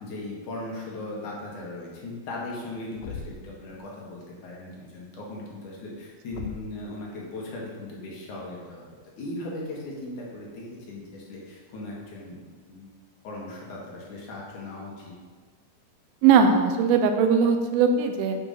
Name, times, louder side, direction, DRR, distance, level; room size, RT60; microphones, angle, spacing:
voice 1, 0.0-8.9 9.2-12.9 13.2-15.1, left 2 dB, 60° left, -4 dB, 2.8 m, -38 dB
Thump thud, 3.0-3.6 6.3-6.9, left 6 dB, 85° left, 1.7 m, -38 dB
voice 2, 16.2-18.4, right 6 dB, 85° right, 6 dB, 2.6 m, -20 dB
8.7 x 4.9 x 5.6 m, 1.5 s
omnidirectional pair, 4.2 m